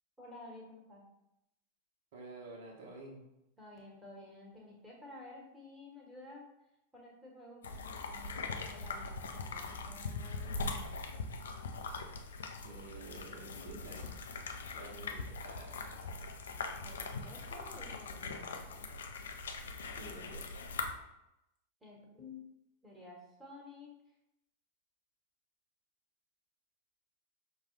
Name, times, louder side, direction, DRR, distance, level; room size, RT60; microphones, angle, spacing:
voice 1, 0.2-1.0 3.6-6.4 6.9-11.1 14.8-14.9 16.8-19.0 21.8-22.5 22.8-23.9, left 2 dB, 10° right, -3 dB, 1.4 m, -52 dB
voice 2, 2.1-3.2 12.0-12.1 12.6-14.1 14.7-16.2 19.9-20.4, right 2 dB, 50° right, -1 dB, 1.1 m, -50 dB
sound 1, 7.6-20.9, left 4 dB, 65° left, 0.4 m, -41 dB
5.9 x 2.3 x 3.2 m, 0.87 s
figure-of-eight pair, 90°, 0 cm